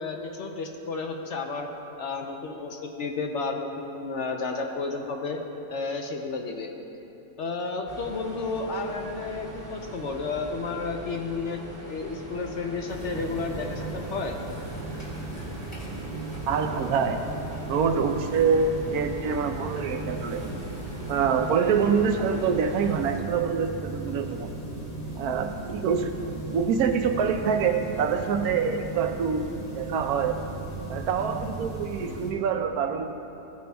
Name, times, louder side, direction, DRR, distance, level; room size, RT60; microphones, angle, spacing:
voice 1, 0.0-1.7 2.0-5.4 5.7-6.7 7.4-11.6 11.9-14.4, left 4 dB, 60° left, 3 dB, 0.8 m, -32 dB
sound 1, 7.9-23.0, right 1 dB, 25° right, 2.4 m, -42 dB
sound 2, 12.9-32.3, right 2 dB, 35° left, 2.4 m, -37 dB
voice 2, 16.5-17.2 17.7-20.5 21.1-24.5 25.2-26.2 26.5-29.4 29.7-30.4 30.9-33.1, right 6 dB, 70° right, 6 dB, 1.1 m, -25 dB
16.0 x 9.1 x 2.3 m, 2.9 s
omnidirectional pair, 1.7 m